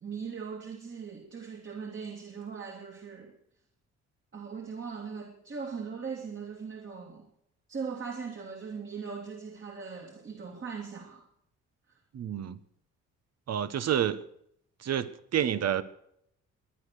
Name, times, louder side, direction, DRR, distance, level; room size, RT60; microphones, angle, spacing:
voice 1, 0.0-3.3 4.3-7.3 7.7-11.2, right 5 dB, 40° right, 1 dB, 2.5 m, -39 dB
voice 2, 12.1-12.6 13.5-14.2 14.8-15.8, right 9 dB, 55° right, 14 dB, 1.1 m, -29 dB
21.0 x 10.0 x 6.7 m, 0.72 s
cardioid pair, 90°, 30 cm